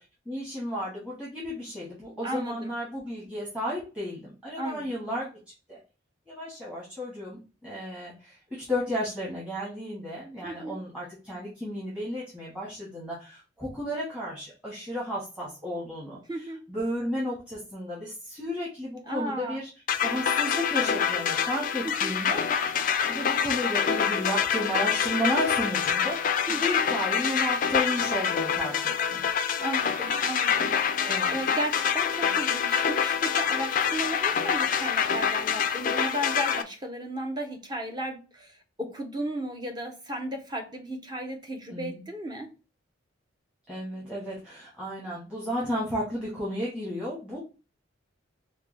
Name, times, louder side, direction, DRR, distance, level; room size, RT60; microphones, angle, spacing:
voice 1, 0.2-5.3 5.7-5.8 6.3-16.2 16.7-19.7 20.0-22.7 23.0-29.2 31.0-31.4 41.7-42.0 43.7-47.4, equal, 5° right, 1.3 m, -33 dB
voice 2, 2.2-2.7 4.6-4.9 10.4-10.8 16.3-16.6 19.1-19.6 21.8-22.1 26.5-26.8 29.6-30.7 31.0-42.5, right 1 dB, 20° right, 0.7 m, -35 dB
sound 1, 19.9-36.6, left 7 dB, 45° left, 0.3 m, -26 dB
4.4 x 2.2 x 3.2 m
head